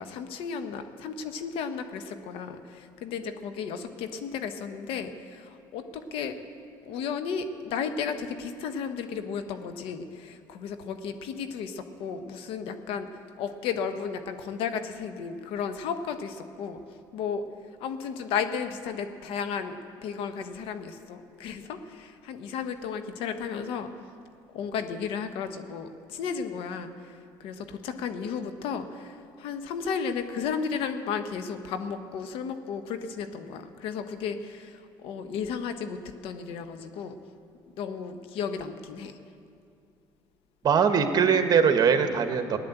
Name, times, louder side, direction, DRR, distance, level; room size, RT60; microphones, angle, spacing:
voice 1, 0.0-6.4 6.8-13.1 13.4-16.8 17.1-17.5 17.8-23.9 24.5-37.2 37.8-39.2, left 6 dB, 75° left, 8 dB, 1.1 m, -34 dB
voice 2, 40.6-42.6, right 6 dB, 45° right, 7 dB, 1.4 m, -21 dB
16.0 x 10.5 x 8.1 m, 2.4 s
supercardioid pair, 85°, 9 cm